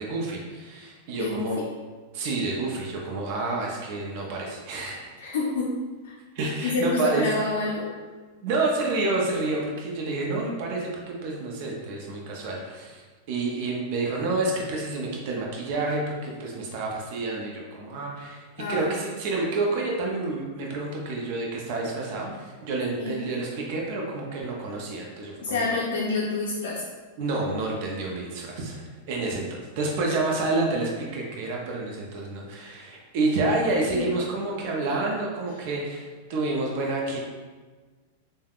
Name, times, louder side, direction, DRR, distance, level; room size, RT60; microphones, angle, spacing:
voice 1, 0.0-1.6 2.1-5.1 6.4-7.3 8.4-25.8 27.2-37.2, right 2 dB, 60° right, -1 dB, 0.5 m, -29 dB
voice 2, 1.1-1.6 5.2-5.8 6.0-6.1 6.6-7.9 18.6-19.1 23.0-23.3 25.4-26.8 33.9-34.1, left 3 dB, 75° left, -3 dB, 0.4 m, -28 dB
3.3 x 2.1 x 2.4 m, 1.4 s
hypercardioid pair, 120°, 0 cm